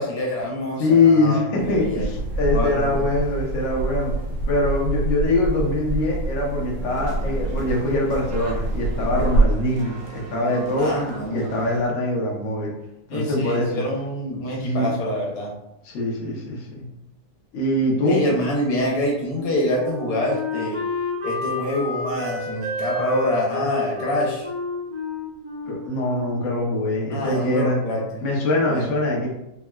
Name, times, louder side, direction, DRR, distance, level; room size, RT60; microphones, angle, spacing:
voice 1, 0.0-2.1 2.5-3.1 10.8-11.5 13.1-15.5 18.0-20.8 21.2-24.5 27.1-28.2 28.7-28.9, left 1 dB, 80° left, -2 dB, 1.3 m, -26 dB
voice 2, 0.8-4.1 4.5-10.9 11.3-12.7 13.1-13.8 14.6-15.0 15.8-16.9 17.5-18.2 25.7-27.8 28.2-29.3, left 2 dB, 60° left, -2 dB, 0.9 m, -23 dB
sound 1, 1.6-9.5, right 2 dB, 85° right, 1.4 m, -26 dB
sound 2, 6.9-11.9, right 4 dB, 65° right, 1.0 m, -40 dB
Wind instrument woodwind instrument, 19.3-26.8, left 3 dB, 40° right, 0.5 m, -31 dB
3.6 x 2.1 x 2.2 m, 0.86 s
omnidirectional pair, 1.8 m